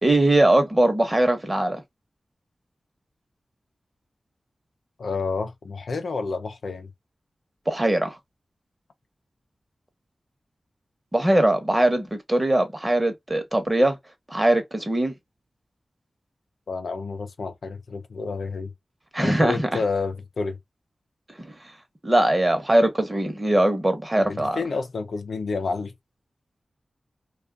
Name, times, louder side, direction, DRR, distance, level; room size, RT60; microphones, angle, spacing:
voice 1, 0.0-1.8 7.7-8.2 11.1-14.0 14.3-15.1 19.1-19.7 21.4-21.5 22.0-24.6, right 1 dB, 25° right, 1.1 m, -21 dB
voice 2, 5.0-6.9 16.7-18.7 19.2-20.6 24.2-25.9, left 4 dB, 85° left, 0.6 m, -29 dB
2.5 x 2.4 x 2.4 m
cardioid pair, 45°, 0 cm